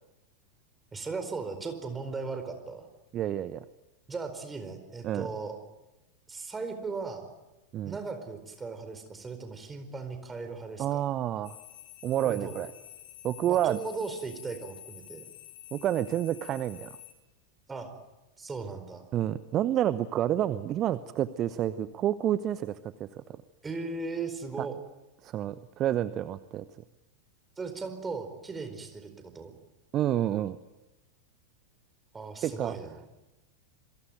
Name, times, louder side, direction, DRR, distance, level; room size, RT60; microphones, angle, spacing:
voice 1, 0.9-2.9 4.1-5.6 6.3-7.3 7.8-11.0 12.2-12.5 13.5-15.2 17.7-17.9 18.4-19.1 23.6-24.8 27.6-29.5 32.1-33.0, right 4 dB, 15° right, 7 dB, 4.6 m, -37 dB
voice 2, 3.1-3.6 5.0-5.3 7.7-7.9 10.8-11.6 12.0-12.7 13.2-13.8 15.7-17.0 19.1-23.2 24.6-24.7 25.2-26.6 29.9-30.6 32.4-32.7, right 11 dB, 30° right, 15 dB, 0.9 m, -29 dB
sound 1, 11.4-17.1, left 14 dB, 50° left, 5.9 m, -49 dB
27.0 x 23.0 x 9.2 m, 1.0 s
figure-of-eight pair, 90°, 0 cm